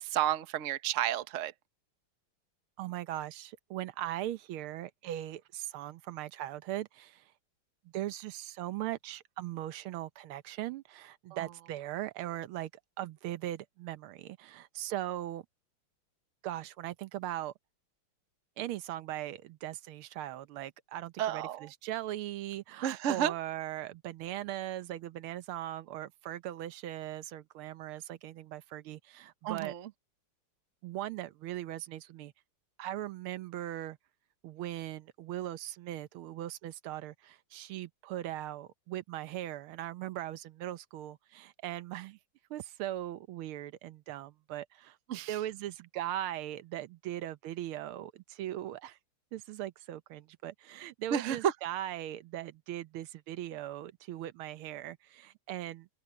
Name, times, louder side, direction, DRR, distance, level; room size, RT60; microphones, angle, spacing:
voice 1, 0.0-1.5 11.3-11.5 21.2-21.7 22.8-23.3 29.4-29.9 45.1-45.4 51.1-51.5, right 10 dB, 50° right, 1.0 m, -31 dB
voice 2, 2.8-7.2 7.9-12.7 13.0-15.4 16.4-17.5 18.6-29.7 30.8-32.3 32.8-34.0 34.4-42.2 42.5-45.0 45.3-49.0 49.3-55.9, right 13 dB, 90° right, 1.7 m, -39 dB
open air
omnidirectional pair, 2.3 m